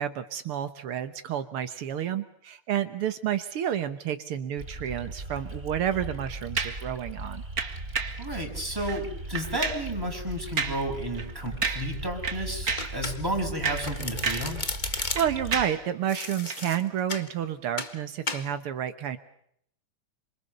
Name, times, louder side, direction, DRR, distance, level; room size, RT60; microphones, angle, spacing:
voice 1, 0.0-7.4 14.9-19.2, right 10 dB, 80° right, 10 dB, 2.1 m, -30 dB
sound 1, 4.6-15.6, right 2 dB, 25° right, 5.9 m, -39 dB
sound 2, 6.6-6.9 7.6-8.2 8.8-9.0 9.3-9.9 10.6-10.9 11.2-11.3 11.6-12.0 12.2-13.0 13.4-14.6 14.8-15.9 16.5-16.6, right 5 dB, 40° right, 2.3 m, -31 dB
voice 2, 8.2-14.6, right 1 dB, 10° right, 1 dB, 6.8 m, -32 dB
Domestic sounds home sounds, 12.8-13.5 13.8-15.5 16.1-17.3 17.8-18.0 18.3-18.5, left 3 dB, 25° left, 1.6 m, -34 dB
28.0 x 26.0 x 6.8 m, 0.71 s
omnidirectional pair, 2.4 m